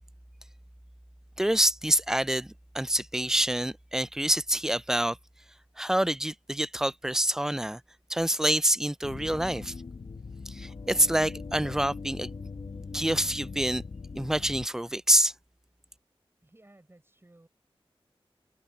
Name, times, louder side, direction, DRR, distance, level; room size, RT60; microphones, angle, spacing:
voice 1, 1.4-5.2 5.8-7.8 8.1-9.7 10.5-12.3 12.9-13.8 14.1-15.3, right 1 dB, 5° right, 0.4 m, -26 dB
sound 1, 9.0-14.7, left 4 dB, 60° left, 1.1 m, -40 dB
voice 2, 16.4-17.5, right 1 dB, 25° right, 4.8 m, -57 dB
cardioid pair, 55°, 10 cm